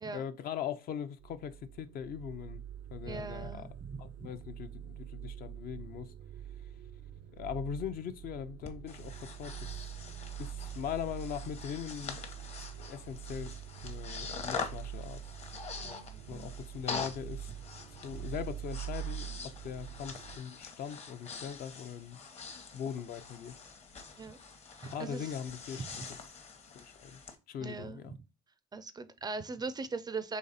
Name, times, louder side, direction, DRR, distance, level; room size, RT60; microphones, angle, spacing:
voice 1, 0.1-2.6 2.9-3.7 4.0-6.1 7.4-9.9 10.4-12.2 12.8-13.6 13.8-15.2 16.3-17.5 18.0-22.2 22.7-23.6 24.8-25.9 26.7-27.2 27.5-28.1, left 8 dB, 60° left, 0.6 m, -40 dB
sound 1, 1.2-20.4, right 10 dB, 85° right, 0.5 m, -45 dB
voice 2, 3.0-4.3 15.7-16.5 18.2-18.3 24.2-24.4 24.8-25.3 25.8-25.9 27.6-28.0 28.7-30.4, right 4 dB, 25° right, 0.4 m, -40 dB
Breathing, 8.6-27.4, left 5 dB, 40° left, 0.9 m, -45 dB
4.1 x 3.2 x 4.0 m
cardioid pair, 110°, 17 cm